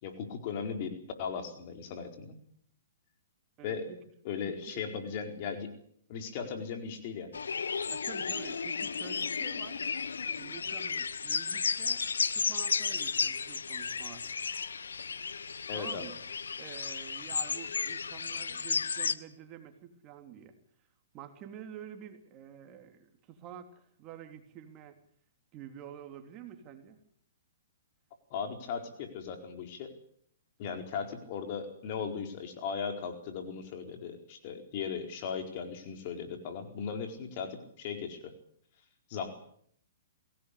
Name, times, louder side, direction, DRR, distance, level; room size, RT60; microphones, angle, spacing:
voice 1, 0.0-2.4 3.6-3.9 4.2-5.7 6.1-7.3 15.7-16.1 28.3-29.9 30.6-38.3 39.1-39.4, left 6 dB, 45° left, 5 dB, 4.5 m, -37 dB
voice 2, 3.6-4.0 4.5-4.8 7.9-9.8 10.4-12.1 12.3-14.3 15.7-16.2 16.6-20.5 21.1-25.0 25.5-27.0, right 9 dB, 30° right, 6 dB, 3.2 m, -48 dB
sound 1, 7.3-19.1, left 5 dB, 90° left, 1.0 m, -33 dB
23.0 x 18.0 x 8.6 m, 0.65 s
hypercardioid pair, 135°, 0 cm